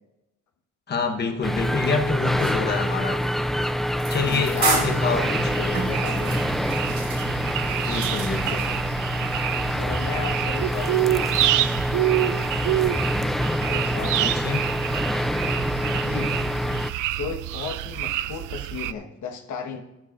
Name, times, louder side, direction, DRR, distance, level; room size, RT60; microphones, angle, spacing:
voice 1, 0.9-3.3 4.1-5.7 7.9-8.7 14.2-14.7, left 4 dB, 35° left, 3 dB, 1.1 m, -26 dB
sound 1, 1.4-16.9, equal, ahead, 0.4 m, -26 dB
sound 2, 2.4-8.8, right 5 dB, 70° right, 2.2 m, -33 dB
voice 2, 4.2-6.7 9.7-11.3 13.6-14.4 16.0-16.3 17.1-19.8, left 6 dB, 75° left, 4 dB, 1.3 m, -35 dB
sound 3, 4.4-18.9, right 15 dB, 90° right, 0.5 m, -28 dB
13.0 x 12.0 x 2.5 m, 0.93 s
cardioid pair, 90°, 30 cm